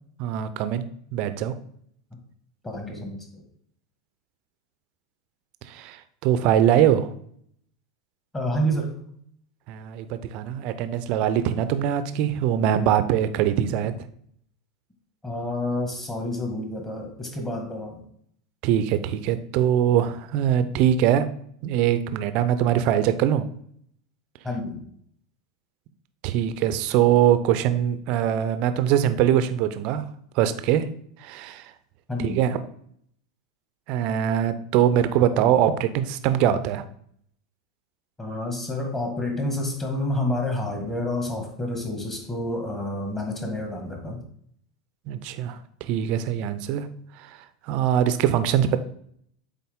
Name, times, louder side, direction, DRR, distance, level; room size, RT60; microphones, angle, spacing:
voice 1, 0.2-1.5 5.7-7.1 9.7-13.9 18.6-21.3 21.6-23.4 26.2-30.1 30.4-30.9 31.2-31.7 32.2-32.6 33.9-36.8 45.1-46.9 47.2-47.3 47.7-48.8, right 10 dB, 45° right, 11 dB, 0.6 m, -22 dB
voice 2, 2.6-3.4 8.3-8.9 13.8-13.9 15.2-18.0 24.4-24.8 32.1-32.4 38.2-44.2, left 1 dB, 15° left, 2 dB, 1.7 m, -29 dB
8.4 x 3.7 x 3.6 m, 0.66 s
figure-of-eight pair, 85°, 2 cm